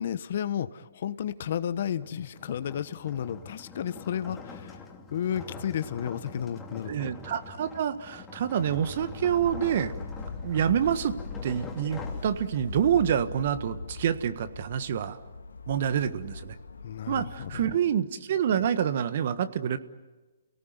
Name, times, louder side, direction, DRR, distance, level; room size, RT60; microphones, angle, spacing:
voice 1, 0.0-4.8 5.1-7.1 16.8-17.7, left 9 dB, 55° left, 13 dB, 1.1 m, -32 dB
sound 1, 2.0-12.9, left 4 dB, 10° left, 2.8 m, -44 dB
voice 2, 6.9-9.9 10.4-11.2 11.4-15.2 15.7-16.6 17.1-19.8, right 9 dB, 55° right, 11 dB, 1.5 m, -27 dB
sound 2, 8.8-17.7, left 4 dB, 85° left, 2.2 m, -41 dB
29.5 x 18.5 x 9.6 m, 1.2 s
hypercardioid pair, 135°, 0 cm